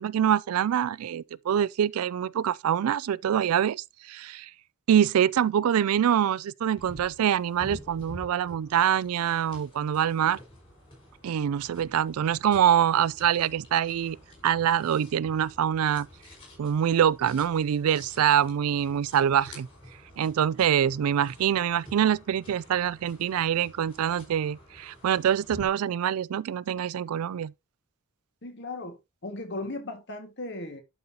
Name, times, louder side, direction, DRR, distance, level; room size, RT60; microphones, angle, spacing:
voice 1, 0.0-4.5 4.9-10.4 11.2-14.2 14.4-16.1 16.6-19.7 20.2-27.5, right 9 dB, 85° right, 0.3 m, -25 dB
sound 1, 6.8-25.7, left 1 dB, 25° left, 5.5 m, -49 dB
voice 2, 28.4-30.8, left 2 dB, 55° left, 1.8 m, -37 dB
11.5 x 5.5 x 2.8 m
head